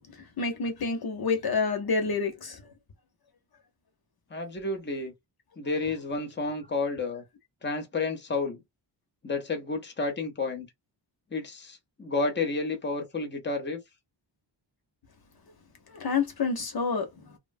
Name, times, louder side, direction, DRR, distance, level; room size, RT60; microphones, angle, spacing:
voice 1, 0.1-2.6 15.9-17.3, left 4 dB, 55° left, 0.9 m, -29 dB
voice 2, 4.3-5.1 5.6-7.2 7.6-8.6 9.2-10.7 11.3-13.8, left 3 dB, 25° left, 0.9 m, -31 dB
3.0 x 2.1 x 2.6 m
wide cardioid pair, 120°, 45 cm